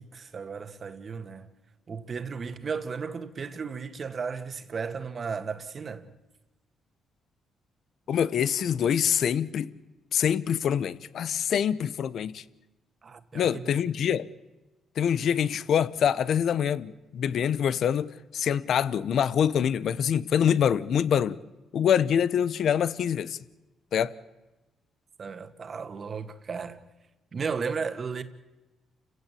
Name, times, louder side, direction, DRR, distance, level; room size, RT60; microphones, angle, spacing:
voice 1, 0.0-1.5 1.9-6.1 13.0-13.8 25.2-26.8 27.3-28.2, right 5 dB, 45° right, 2.0 m, -35 dB
voice 2, 8.1-9.7 10.1-12.4 13.3-14.3 15.0-21.4 21.7-23.4 23.9-24.1, left 8 dB, 65° left, 1.0 m, -25 dB
29.5 x 16.5 x 8.6 m
cardioid pair, 90°, 0 cm